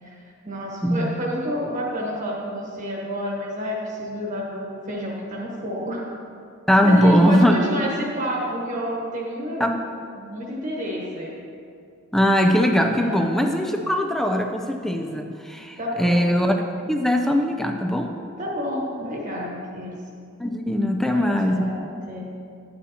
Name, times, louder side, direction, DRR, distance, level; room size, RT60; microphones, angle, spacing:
voice 1, 0.0-6.1 6.8-9.7 10.1-11.3 13.0-13.3 15.8-16.3 18.4-20.0 21.1-22.3, equal, 35° right, -3 dB, 1.2 m, -29 dB
voice 2, 0.8-1.1 6.7-7.5 9.6-9.8 12.1-16.5 16.9-18.1 20.4-21.7, equal, ahead, 4 dB, 0.4 m, -20 dB
11.0 x 8.6 x 2.8 m, 2.4 s
head